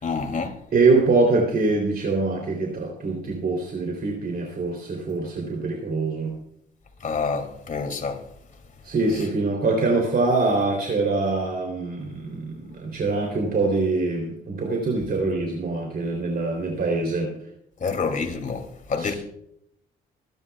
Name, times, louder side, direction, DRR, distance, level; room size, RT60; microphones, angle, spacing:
voice 1, 0.0-0.5 7.0-8.2 17.8-19.1, left 5 dB, 40° left, 2.7 m, -27 dB
voice 2, 0.7-6.3 8.8-17.3 19.0-19.1, right 3 dB, 50° right, 3.3 m, -24 dB
25.5 x 11.0 x 2.4 m
cardioid pair, 90°, 20 cm